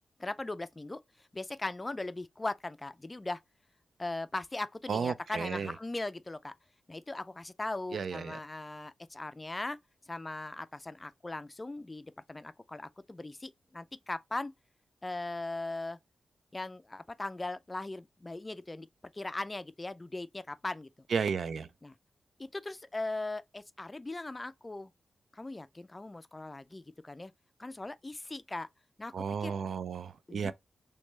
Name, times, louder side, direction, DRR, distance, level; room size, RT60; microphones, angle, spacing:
voice 1, 0.2-3.4 4.0-6.5 6.9-9.8 10.1-14.5 15.0-16.0 16.5-18.9 19.1-21.1 21.8-22.0 22.4-24.9 25.3-27.3 27.6-28.7 29.0-29.5 30.3-30.5, left 2 dB, 25° left, 0.3 m, -39 dB
voice 2, 4.9-5.7 7.9-8.4 21.1-21.7 29.1-30.5, right 6 dB, 75° right, 0.3 m, -33 dB
3.2 x 3.2 x 3.0 m
cardioid pair, 55°, 0 cm